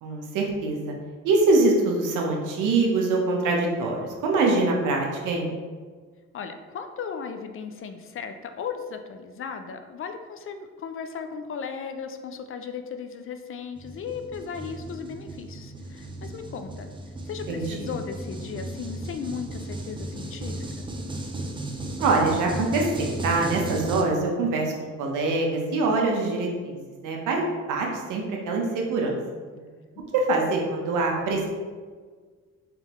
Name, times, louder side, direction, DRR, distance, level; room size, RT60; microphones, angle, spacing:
voice 1, 0.0-0.9 1.2-5.5 17.5-17.9 22.0-27.4 27.7-29.2 30.1-31.5, right 3 dB, 85° right, 0 dB, 0.8 m, -24 dB
voice 2, 6.3-16.9 17.3-20.9 29.5-30.0, left 6 dB, 45° left, 7 dB, 0.4 m, -36 dB
sound 1, 13.8-24.0, right 1 dB, 15° right, 0.5 m, -35 dB
3.6 x 3.3 x 3.0 m, 1.5 s
cardioid pair, 90°, 30 cm